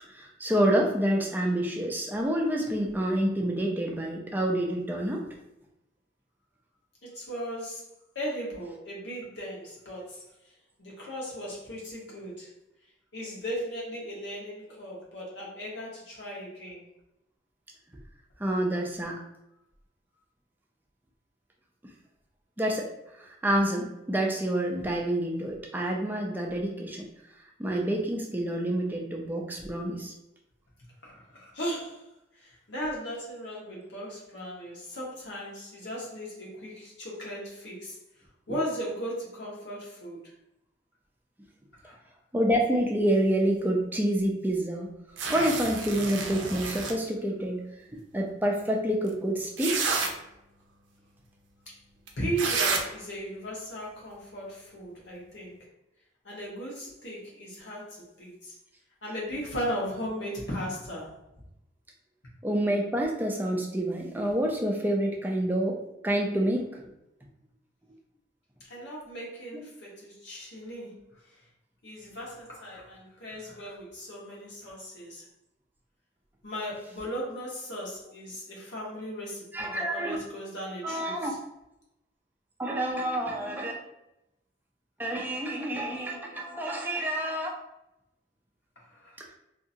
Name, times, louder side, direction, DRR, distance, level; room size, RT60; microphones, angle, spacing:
voice 1, 0.1-5.3 18.4-19.2 22.6-22.9 23.2-27.0 27.6-30.1 38.5-38.6 42.3-44.9 45.3-50.0 62.4-66.9 69.5-69.6 79.5-80.2 80.8-81.4 82.6-83.8 85.0-87.6, right 1 dB, 10° right, 0 dB, 0.4 m, -28 dB
voice 2, 7.0-7.8 8.1-10.2 10.8-12.5 13.1-16.9 31.0-32.0 32.3-38.0 38.5-40.3 41.8-41.9 51.7-51.8 52.2-55.6 56.2-58.5 59.0-61.2 68.7-71.0 71.2-71.4 71.8-75.2 76.4-81.4 88.8-89.3, equal, 75° left, -4 dB, 1.1 m, -37 dB
sound 1, 45.2-46.9 49.1-49.2 49.6-50.1 52.1-52.2 52.4-52.8, right 4 dB, 85° right, 0.5 m, -29 dB
2.8 x 2.6 x 2.6 m, 0.88 s
head